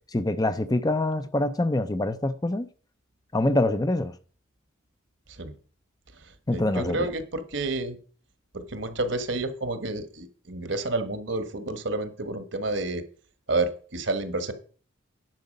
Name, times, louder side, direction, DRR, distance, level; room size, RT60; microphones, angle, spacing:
voice 1, 0.1-2.7 3.3-4.1 6.5-7.1, left 1 dB, 20° left, 0.5 m, -25 dB
voice 2, 6.5-8.0 8.5-13.0 13.5-14.5, right 2 dB, 65° right, 1.4 m, -30 dB
10.5 x 7.3 x 5.3 m
head